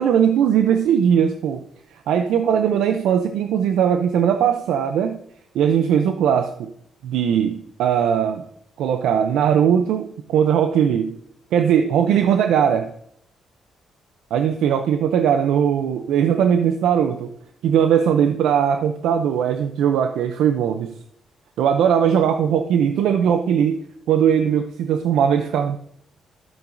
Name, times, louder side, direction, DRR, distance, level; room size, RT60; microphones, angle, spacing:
voice 1, 0.0-1.6 1.9-5.2 5.5-6.7 7.0-8.4 8.8-11.2 11.5-12.9 14.3-17.3 17.6-20.9 21.6-23.8 24.1-25.8, right 8 dB, 85° right, 7 dB, 0.5 m, -19 dB
12.0 x 8.3 x 2.6 m, 0.71 s
cardioid pair, 80°, 0 cm